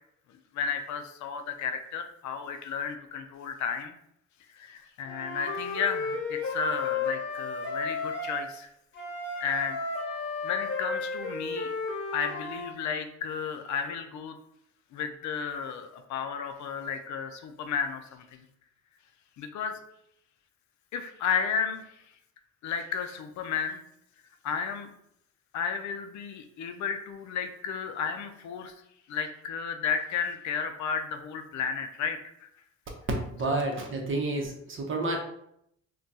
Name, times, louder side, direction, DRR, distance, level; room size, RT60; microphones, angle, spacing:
voice 1, 0.5-3.9 4.5-8.7 9.4-9.8 10.4-11.7 12.1-14.4 14.9-18.4 19.4-19.8 20.9-21.8 22.6-23.8 24.4-24.9 25.5-28.7 29.1-32.5 33.5-33.6, left 6 dB, 70° left, 6 dB, 0.5 m, -33 dB
Wind instrument woodwind instrument, 5.1-8.4 8.9-12.7, left 3 dB, 35° left, 1.1 m, -33 dB
voice 2, 33.2-35.2, right 2 dB, 40° right, 1 dB, 0.8 m, -30 dB
2.2 x 2.2 x 3.9 m, 0.75 s
cardioid pair, 90°, 30 cm